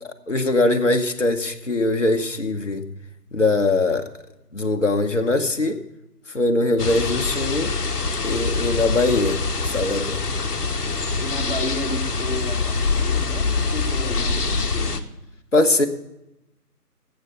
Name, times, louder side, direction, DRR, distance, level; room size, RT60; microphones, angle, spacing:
voice 1, 0.0-2.9 3.3-4.1 4.5-5.8 6.3-7.8 8.2-10.2 15.5-15.9, left 2 dB, 50° left, 5 dB, 1.0 m, -21 dB
sound 1, 6.8-15.0, left 4 dB, 70° left, 1.1 m, -24 dB
voice 2, 11.2-15.1, left 1 dB, 35° left, 0 dB, 1.6 m, -32 dB
12.0 x 8.1 x 6.7 m, 0.90 s
figure-of-eight pair, 180°, 48 cm